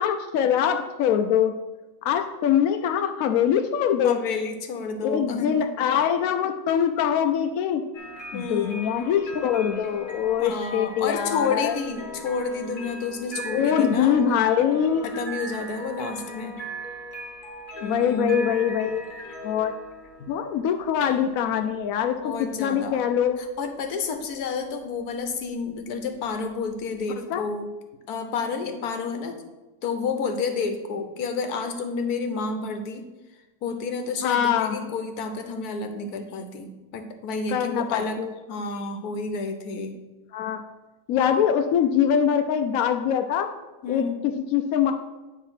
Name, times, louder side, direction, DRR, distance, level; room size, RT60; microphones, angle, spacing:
voice 1, 0.0-1.5 2.0-4.2 5.0-7.8 8.3-11.8 13.5-15.1 17.8-19.0 19.4-19.7 20.3-22.3 22.6-23.4 27.2-27.4 34.2-34.9 37.5-38.3 40.3-40.6 41.1-43.5 43.9-44.9, left 8 dB, 75° left, 6 dB, 1.0 m, -23 dB
voice 2, 4.0-5.7 8.3-8.9 10.4-14.1 15.0-16.7 17.8-18.4 22.2-23.0 23.6-27.7 28.1-29.4 29.8-33.1 33.6-38.2 38.5-39.9 43.8-44.2, left 4 dB, 90° left, 7 dB, 1.4 m, -30 dB
sound 1, 7.9-27.0, right 1 dB, 35° left, 1.3 m, -40 dB
9.2 x 3.6 x 5.7 m, 1.1 s
omnidirectional pair, 1.6 m